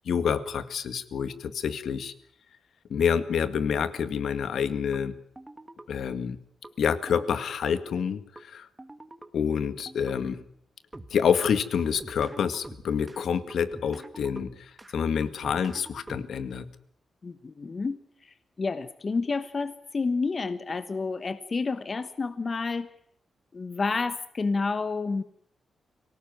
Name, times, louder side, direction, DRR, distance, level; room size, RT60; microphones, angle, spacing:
voice 1, 0.1-2.1 2.9-5.1 5.9-6.4 6.8-8.7 9.3-10.4 11.1-16.7, left 7 dB, 70° left, 12 dB, 2.0 m, -27 dB
sound 1, 4.9-5.0 5.4-5.9 6.6-6.7 7.1-7.6 8.4-8.5 8.8-9.3 9.9-10.2 10.9-11.5 11.8-13.2 13.5-14.9 15.2-16.5, right 2 dB, 10° right, 1.7 m, -45 dB
voice 2, 17.2-22.9 23.5-25.2, left 4 dB, 30° left, 12 dB, 1.2 m, -30 dB
25.0 x 17.5 x 9.4 m, 0.67 s
wide cardioid pair, 150°, 0 cm